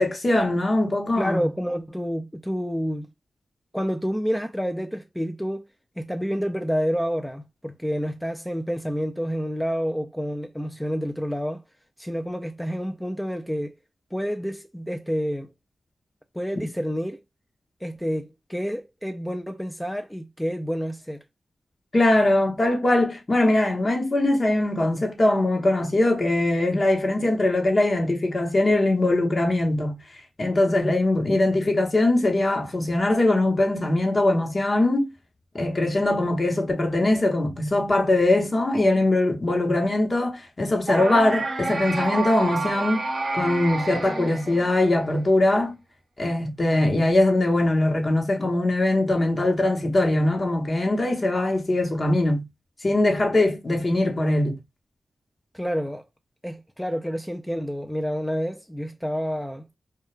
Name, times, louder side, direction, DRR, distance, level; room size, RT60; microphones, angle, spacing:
voice 1, 0.0-1.5 16.5-16.7 21.9-30.0 30.4-35.1 35.5-43.0 43.3-45.8 46.2-52.5 52.8-54.6, left 2 dB, 45° left, 0.9 m, -21 dB
voice 2, 1.2-3.1 3.7-5.7 6.0-11.6 12.0-13.8 14.1-15.5 16.3-17.2 17.8-21.2 55.5-56.1 56.4-59.6, equal, 5° left, 0.4 m, -28 dB
sound 1, 40.9-45.0, right 3 dB, 60° right, 0.7 m, -29 dB
2.2 x 2.2 x 2.9 m
cardioid pair, 40°, 0 cm